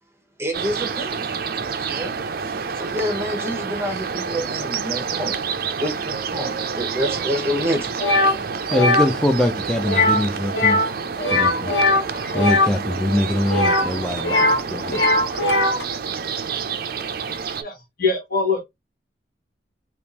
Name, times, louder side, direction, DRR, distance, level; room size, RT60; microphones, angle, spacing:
voice 1, 0.4-1.3 1.8-2.2 2.8-5.4 5.8-8.3, equal, 15° right, 1.0 m, -27 dB
sound 1, 0.5-17.6, right 6 dB, 55° right, 0.5 m, -28 dB
sound 2, 8.0-8.3 8.7-9.1 9.8-10.2 10.5-10.9 11.2-12.7 13.5-14.6 14.9-15.8, left 2 dB, 80° left, 1.5 m, -19 dB
voice 2, 8.7-10.8 11.3-11.8 12.3-15.0, left 1 dB, 5° left, 0.4 m, -23 dB
voice 3, 17.6-18.6, left 4 dB, 55° left, 1.8 m, -23 dB
3.5 x 2.9 x 2.8 m
head